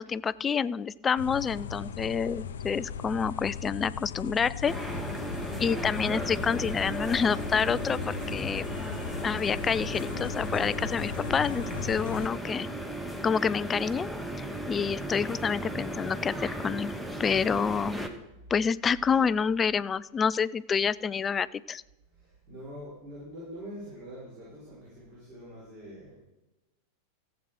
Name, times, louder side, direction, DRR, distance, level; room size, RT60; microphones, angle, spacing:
voice 1, 0.0-4.7 5.6-8.7 9.2-12.7 13.2-14.1 14.4-16.9 17.2-18.1 18.5-21.8, left 6 dB, 20° left, 19 dB, 0.3 m, -28 dB
sound 1, 1.2-12.3, left 7 dB, 60° left, 0.6 m, -38 dB
sound 2, 4.6-18.1, right 1 dB, 5° right, 1.2 m, -36 dB
voice 2, 22.1-26.2, equal, 40° right, -6 dB, 5.5 m, -46 dB
15.0 x 8.0 x 5.1 m, 1.0 s
figure-of-eight pair, 90°, 0 cm